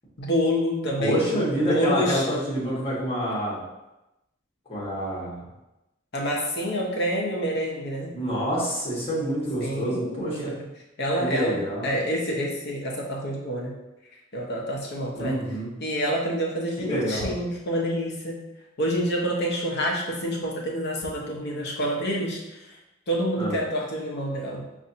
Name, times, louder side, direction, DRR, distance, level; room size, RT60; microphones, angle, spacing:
voice 1, 0.2-2.2 6.1-8.1 9.6-10.5 11.0-13.7 14.3-15.4 15.8-18.4 18.8-22.4 23.1-24.6, equal, 55° left, -2 dB, 0.8 m, -27 dB
voice 2, 1.0-3.6 4.7-5.4 8.1-10.5 11.2-11.9 15.1-15.7 16.8-17.3 23.4-23.5, equal, 30° left, -7 dB, 1.4 m, -27 dB
5.4 x 2.6 x 2.8 m, 0.96 s
head